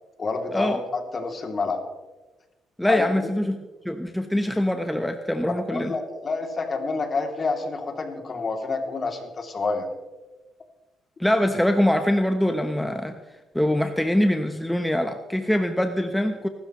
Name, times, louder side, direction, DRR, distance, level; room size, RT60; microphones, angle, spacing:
voice 1, 0.2-1.8 2.9-3.1 5.7-9.9, left 4 dB, 40° left, 3 dB, 2.7 m, -28 dB
voice 2, 2.8-3.6 3.8-5.9 11.2-13.2 13.5-16.5, left 1 dB, 5° left, 6 dB, 0.9 m, -23 dB
24.0 x 12.5 x 3.1 m, 1.2 s
cardioid pair, 90°, 0 cm